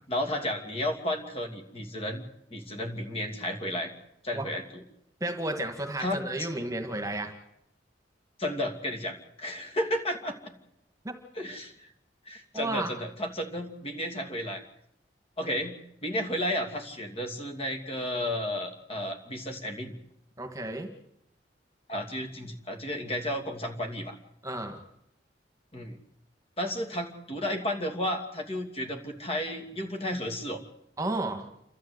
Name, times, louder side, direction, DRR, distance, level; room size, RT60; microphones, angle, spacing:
voice 1, 0.1-2.2 2.5-3.9 4.2-4.8 6.0-6.5 8.4-10.4 11.4-11.7 12.3-14.6 15.4-19.9 21.9-24.2 25.7-26.0 26.6-30.6, left 1 dB, 30° left, 4 dB, 2.8 m, -33 dB
voice 2, 5.2-7.3 11.0-11.1 12.5-13.0 20.4-20.9 24.4-24.8 31.0-31.5, right 1 dB, 20° right, 5 dB, 1.8 m, -32 dB
29.0 x 13.0 x 8.1 m, 0.80 s
head